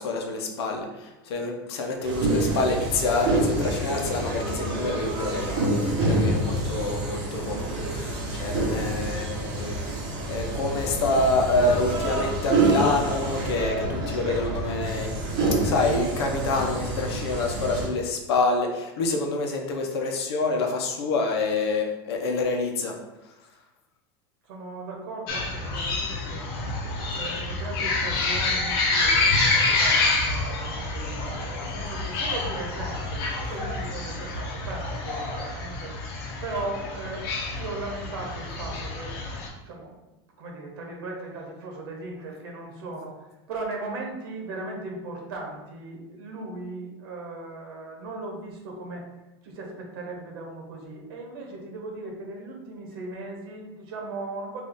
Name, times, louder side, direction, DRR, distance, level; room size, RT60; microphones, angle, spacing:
voice 1, 0.0-9.8 10.3-15.2 15.6-22.9, left 3 dB, 90° left, 2 dB, 0.8 m, -27 dB
sound 1, 2.0-17.9, right 2 dB, 40° right, 1.2 m, -27 dB
voice 2, 24.4-26.4 27.1-39.1 39.6-39.9 40.4-43.2 43.5-49.1 49.4-54.6, right 2 dB, 65° right, 0 dB, 1.1 m, -37 dB
sound 2, 25.3-39.5, left 3 dB, 60° left, 0.9 m, -27 dB
4.0 x 2.7 x 3.5 m, 1.0 s
supercardioid pair, 170°, 13 cm